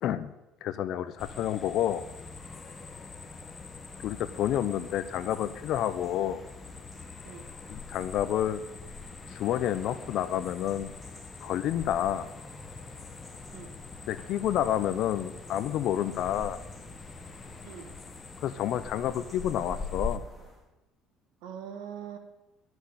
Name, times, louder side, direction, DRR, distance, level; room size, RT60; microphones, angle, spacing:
voice 1, 0.0-0.3 0.6-2.0 4.0-6.4 7.7-8.6 9.3-10.9 11.4-12.3 14.1-16.6 18.4-20.2, left 11 dB, 65° left, 13 dB, 0.7 m, -29 dB
sound 1, 1.2-20.2, left 4 dB, 25° left, 1.1 m, -43 dB
sound 2, 1.8-20.7, right 1 dB, 10° right, 3.5 m, -55 dB
voice 2, 17.6-18.0 21.4-22.2, right 8 dB, 80° right, 6 dB, 1.8 m, -42 dB
12.0 x 6.3 x 8.2 m, 0.98 s
cardioid pair, 105°, 0 cm